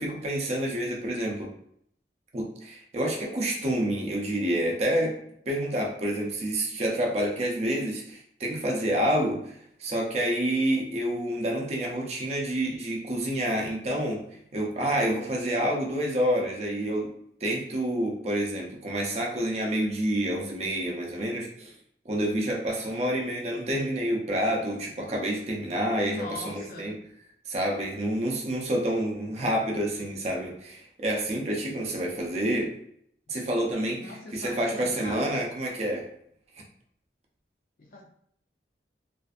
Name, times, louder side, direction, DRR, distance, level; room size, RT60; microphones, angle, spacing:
voice 1, 0.0-1.5 2.3-5.2 5.5-9.5 9.8-14.3 14.5-17.1 17.4-21.7 22.1-26.9 27.5-32.7 33.3-36.1, right 1 dB, 35° right, -1 dB, 0.5 m, -28 dB
voice 2, 26.1-26.9 34.0-35.4 37.8-38.0, left 2 dB, 50° left, 0 dB, 0.4 m, -40 dB
2.5 x 2.4 x 2.3 m, 0.68 s
head